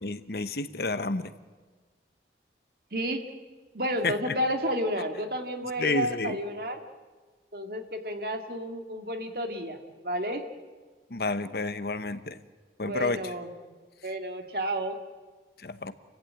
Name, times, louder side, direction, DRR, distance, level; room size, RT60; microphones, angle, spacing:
voice 1, 0.0-1.3 4.0-4.1 5.8-6.4 11.1-12.4 12.8-13.3 15.6-15.9, left 3 dB, 60° left, 12 dB, 1.0 m, -30 dB
voice 2, 2.9-3.2 3.7-6.8 7.5-9.8 10.0-10.4 12.8-13.5 14.0-15.0, equal, 55° right, 5 dB, 2.1 m, -31 dB
30.0 x 15.5 x 9.2 m, 1.4 s
head